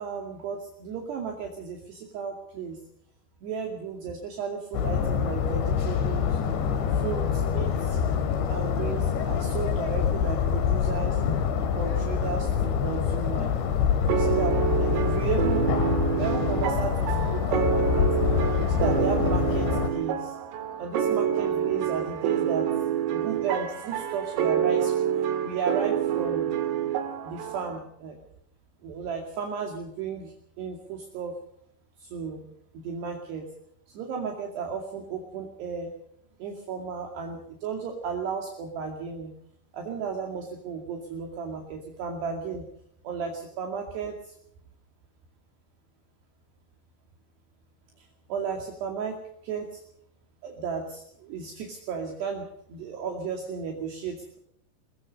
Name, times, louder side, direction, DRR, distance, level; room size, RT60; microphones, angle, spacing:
voice 1, 0.0-2.8 3.4-6.4 6.9-8.0 8.5-11.2 11.8-13.6 14.1-15.8 16.2-18.1 18.6-20.4 20.8-22.7 23.1-24.9 25.4-26.5 27.2-28.2 28.8-31.3 32.0-32.5 32.7-33.5 33.9-35.9 36.4-39.3 39.7-42.7 43.0-44.3 48.0-49.8 50.4-54.4, right 6 dB, 60° right, 1 dB, 4.3 m, -34 dB
sound 1, 4.7-19.9, left 7 dB, 65° left, 4.3 m, -26 dB
sound 2, 14.1-27.8, right 9 dB, 80° right, 4.8 m, -27 dB
23.0 x 21.0 x 5.4 m, 0.70 s
omnidirectional pair, 5.7 m